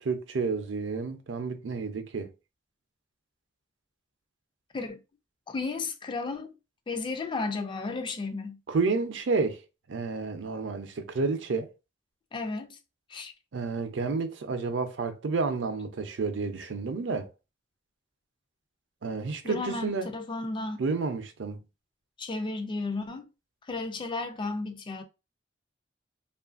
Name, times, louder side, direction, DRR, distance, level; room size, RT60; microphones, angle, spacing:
voice 1, 0.0-2.3 8.7-9.6 9.9-11.7 13.5-17.3 19.0-20.1 20.8-21.6, right 4 dB, 75° right, 0.5 m, -30 dB
voice 2, 5.5-6.5 6.9-8.6 12.3-12.8 13.1-13.3 19.4-20.8 22.2-23.3 23.7-25.0, left 3 dB, 25° left, 0.3 m, -33 dB
3.0 x 2.4 x 2.4 m
head